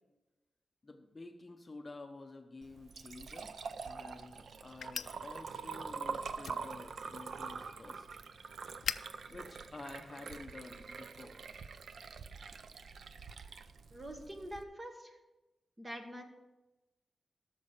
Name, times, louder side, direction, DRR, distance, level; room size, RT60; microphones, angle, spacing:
voice 1, 0.8-3.5 3.8-8.1 9.3-11.4, left 3 dB, 30° left, 4 dB, 0.8 m, -50 dB
Liquid, 2.6-14.6, right 5 dB, 75° right, 0.5 m, -45 dB
sound 1, 3.4-10.6, left 7 dB, 85° left, 0.3 m, -47 dB
voice 2, 13.9-15.2 15.8-16.2, equal, 20° right, 4 dB, 1.3 m, -45 dB
12.5 x 6.7 x 5.1 m, 1.1 s
wide cardioid pair, 130°, 0 cm